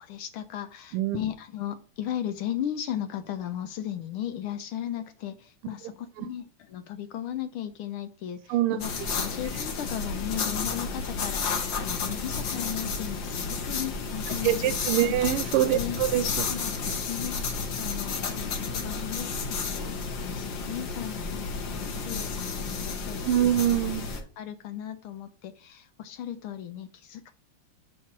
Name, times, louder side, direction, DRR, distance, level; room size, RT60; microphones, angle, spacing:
voice 1, 0.0-14.8 15.0-15.2 15.7-16.7 17.1-17.4 17.8-19.9 20.2-23.5 24.4-27.3, left 10 dB, 80° left, 9 dB, 1.5 m, -36 dB
sound 1, 8.8-24.2, left 4 dB, 60° left, 1.8 m, -32 dB
voice 2, 14.4-16.5 23.2-24.0, right 12 dB, 90° right, 10 dB, 1.5 m, -24 dB
6.1 x 4.4 x 5.9 m, 0.40 s
omnidirectional pair, 2.4 m